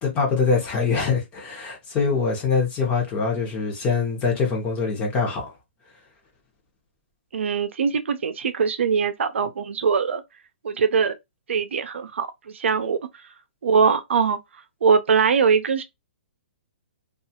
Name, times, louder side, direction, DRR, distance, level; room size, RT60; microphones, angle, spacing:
voice 1, 0.0-5.5, left 5 dB, 20° left, 0.8 m, -23 dB
voice 2, 7.3-10.2 10.6-11.1 11.5-12.3 12.5-13.0 13.6-14.4 14.8-15.8, right 6 dB, 75° right, 0.5 m, -21 dB
2.7 x 2.4 x 2.7 m
hypercardioid pair, 160°, 6 cm